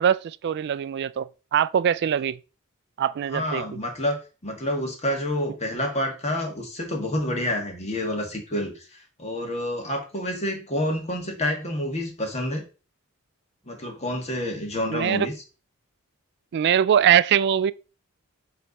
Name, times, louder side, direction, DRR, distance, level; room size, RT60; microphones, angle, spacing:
voice 1, 0.0-2.4 3.0-3.6 14.9-15.3 16.5-17.7, right 9 dB, 50° right, 0.3 m, -22 dB
voice 2, 3.3-4.2 4.4-12.6 13.6-15.3, left 1 dB, 30° left, 1.7 m, -28 dB
7.7 x 3.4 x 4.0 m
head